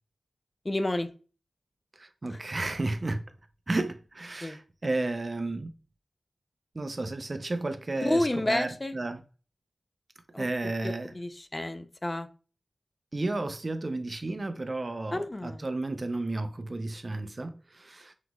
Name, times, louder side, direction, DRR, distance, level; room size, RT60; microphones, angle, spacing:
voice 1, 0.6-1.1 2.3-2.4 4.4-4.6 8.0-8.9 10.3-10.5 10.8-12.3 15.1-15.6, left 1 dB, 25° left, 0.4 m, -30 dB
voice 2, 1.9-3.3 3.7-5.8 6.7-9.2 10.4-11.1 13.1-18.1, right 2 dB, 40° right, 0.5 m, -32 dB
5.9 x 3.0 x 2.3 m
wide cardioid pair, 80°, 0 cm